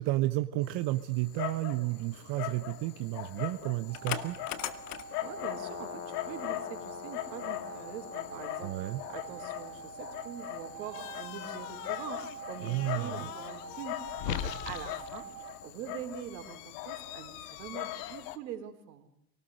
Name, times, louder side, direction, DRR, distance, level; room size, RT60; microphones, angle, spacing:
voice 1, 0.0-4.4 8.6-9.0 12.6-13.3, right 18 dB, 55° right, 10 dB, 1.2 m, -32 dB
Dog, 0.6-18.4, left 14 dB, 65° left, 2.2 m, -39 dB
sound 1, 3.9-15.6, right 7 dB, 25° right, 3.7 m, -46 dB
voice 2, 5.2-15.3 15.6-19.1, right 9 dB, 80° right, 5 dB, 4.4 m, -44 dB
28.0 x 19.5 x 6.5 m, 0.71 s
hypercardioid pair, 90°, 49 cm